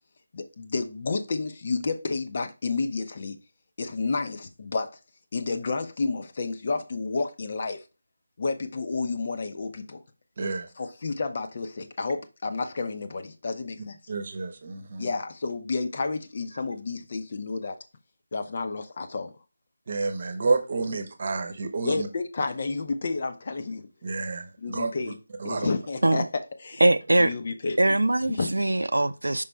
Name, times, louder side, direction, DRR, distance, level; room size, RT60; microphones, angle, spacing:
voice 1, 0.3-3.4 3.8-5.0 5.3-7.8 8.4-10.0 10.8-14.0 15.0-17.8 18.3-19.3 20.9-21.0 21.8-23.9 24.6-25.1 25.4-26.8 27.2-28.0 28.3-28.5, left 3 dB, 40° left, 0.8 m, -30 dB
voice 2, 10.4-10.7 14.1-15.1 19.9-22.1 24.0-24.9 25.4-25.7, right 3 dB, 40° right, 1.0 m, -29 dB
voice 3, 26.8-27.3 27.8-29.4, right 2 dB, 70° right, 0.6 m, -22 dB
5.4 x 5.1 x 3.3 m
figure-of-eight pair, 160°, 0 cm